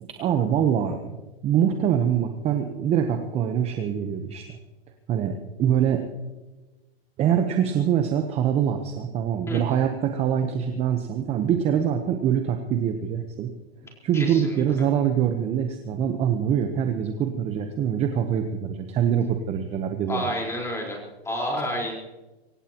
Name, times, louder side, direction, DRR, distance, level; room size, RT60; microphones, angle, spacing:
voice 1, 0.2-1.2 1.4-4.6 5.1-6.1 7.2-13.5 14.0-20.3, right 9 dB, 20° right, 6 dB, 1.0 m, -24 dB
voice 2, 14.1-14.6 20.1-21.0 21.2-22.0, equal, 10° left, -1 dB, 4.4 m, -29 dB
24.5 x 16.5 x 3.0 m, 1.1 s
hypercardioid pair, 140°, 31 cm